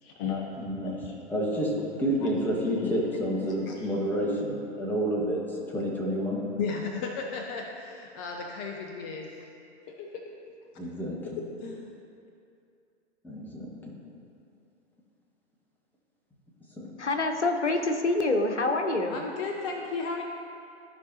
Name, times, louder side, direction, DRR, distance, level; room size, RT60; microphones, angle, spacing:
voice 1, 0.0-0.6 0.8-1.2 2.2-2.3 2.8-3.0 3.4-3.9 6.6-9.5 9.9-10.3 11.2-11.9 19.1-20.2, left 5 dB, 20° left, 2 dB, 0.4 m, -35 dB
voice 2, 0.6-0.9 1.3-1.7 2.0-5.4 5.7-6.4 10.8-11.2 13.2-13.7 16.8-16.9, equal, 5° left, -3 dB, 1.2 m, -29 dB
voice 3, 17.0-19.2, left 2 dB, 80° left, 5 dB, 0.9 m, -26 dB
14.5 x 4.9 x 2.7 m, 2.5 s
figure-of-eight pair, 105°, 34 cm